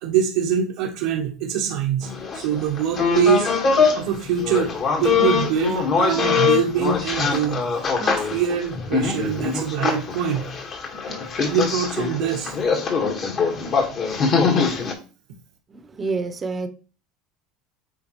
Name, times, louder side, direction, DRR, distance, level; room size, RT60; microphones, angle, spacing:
voice 1, 0.0-3.5 3.9-7.6 8.0-10.5 11.1-11.2 11.4-12.5, right 8 dB, 80° right, 1.2 m, -24 dB
sound 1, 2.0-4.0 4.3-14.9, left 5 dB, 45° left, 1.7 m, -23 dB
voice 2, 15.7-16.7, right 3 dB, 25° right, 0.9 m, -28 dB
8.5 x 3.7 x 3.1 m
supercardioid pair, 100°, 0 cm